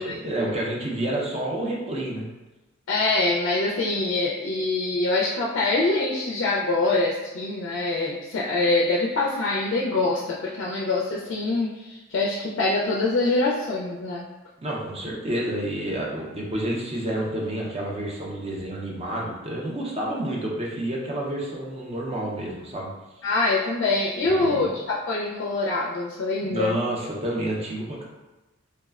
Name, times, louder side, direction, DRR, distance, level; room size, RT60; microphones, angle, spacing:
voice 1, 0.0-2.3 14.6-22.9 24.2-24.6 26.5-28.0, right 1 dB, 30° right, -3 dB, 0.5 m, -29 dB
voice 2, 2.9-14.2 23.2-26.7, left 2 dB, 65° left, -4 dB, 0.4 m, -24 dB
3.1 x 2.0 x 2.3 m, 1.1 s
head